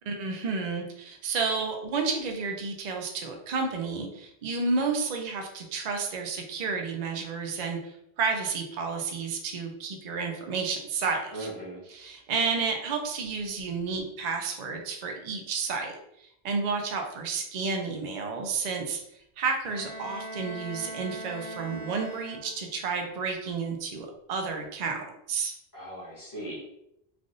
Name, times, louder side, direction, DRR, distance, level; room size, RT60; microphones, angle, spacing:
voice 1, 0.1-11.5 11.9-19.0 19.4-25.5, right 4 dB, 50° right, 3 dB, 0.5 m, -31 dB
voice 2, 11.3-11.8 25.7-26.6, right 1 dB, 20° left, -6 dB, 0.9 m, -38 dB
Bowed string instrument, 19.6-22.9, right 1 dB, 45° left, 0.9 m, -40 dB
3.3 x 2.5 x 2.5 m, 0.79 s
omnidirectional pair, 1.1 m